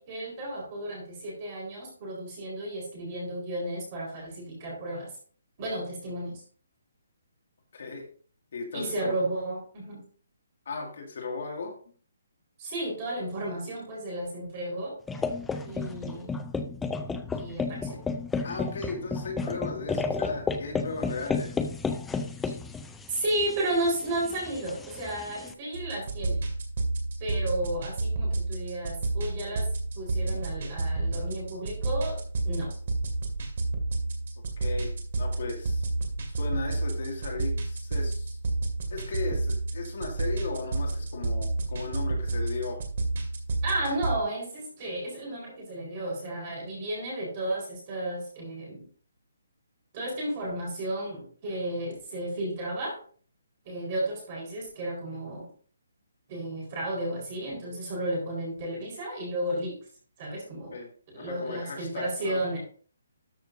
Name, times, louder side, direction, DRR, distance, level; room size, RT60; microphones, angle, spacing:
voice 1, 0.0-5.1 5.6-6.4 8.7-10.0 12.6-15.0 15.6-16.3 17.3-18.0 23.1-26.4 27.2-29.7 29.9-32.2 32.4-32.7 43.6-48.9 49.9-53.0 53.6-55.5 56.3-59.8 60.2-60.7 61.1-62.6, right 1 dB, 25° right, -2 dB, 4.3 m, -33 dB
voice 2, 7.7-8.0 8.5-9.2 10.7-11.8 18.4-21.6 30.3-30.4 34.6-35.9 36.3-38.4 38.9-42.8 60.7-60.9 61.1-62.4, left 4 dB, 50° left, 1 dB, 2.2 m, -36 dB
sound 1, 15.1-25.5, left 4 dB, 5° left, 0.4 m, -32 dB
sound 2, 25.7-44.1, right 2 dB, 45° right, 2.2 m, -30 dB
13.0 x 6.4 x 2.6 m, 0.44 s
hypercardioid pair, 175°, 0 cm